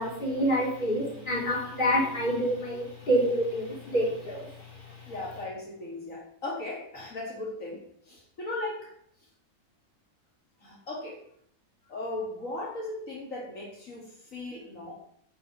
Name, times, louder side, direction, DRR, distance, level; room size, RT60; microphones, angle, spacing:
voice 1, 0.0-4.5, equal, 35° left, -2 dB, 3.5 m, -27 dB
voice 2, 5.1-8.9 10.6-11.2 11.9-15.0, left 2 dB, 65° left, -2 dB, 2.7 m, -37 dB
10.0 x 5.7 x 7.9 m, 0.64 s
omnidirectional pair, 1.5 m